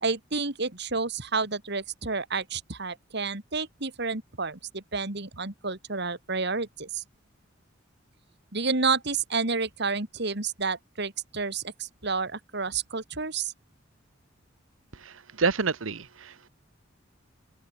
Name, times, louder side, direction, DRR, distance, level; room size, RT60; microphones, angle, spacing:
voice 1, 0.0-7.0 8.5-13.5, right 4 dB, 60° right, 2.7 m, -30 dB
voice 2, 15.0-16.5, right 4 dB, 85° right, 1.1 m, -29 dB
open air
head